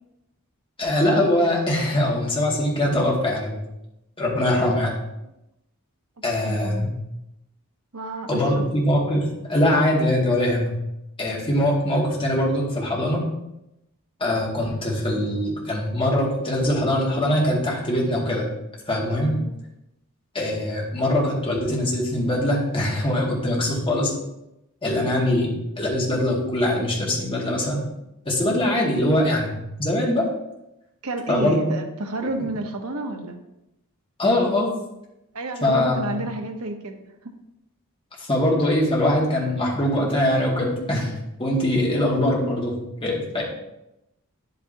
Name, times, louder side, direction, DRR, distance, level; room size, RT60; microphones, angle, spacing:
voice 1, 0.8-3.6 4.2-4.9 6.2-6.9 8.3-10.7 11.2-13.2 14.2-18.5 18.9-19.3 20.3-24.1 24.8-25.5 25.8-27.8 28.3-30.3 31.3-31.6 34.2-34.7 35.6-36.0 38.2-41.1 41.4-42.7 43.0-43.4, left 1 dB, 25° left, -3 dB, 2.1 m, -22 dB
voice 2, 6.3-6.8 7.9-8.4 19.2-19.5 31.0-33.4 35.3-36.9 37.2-37.3, right 2 dB, 75° right, 4 dB, 1.0 m, -30 dB
9.6 x 8.3 x 2.8 m, 0.88 s
head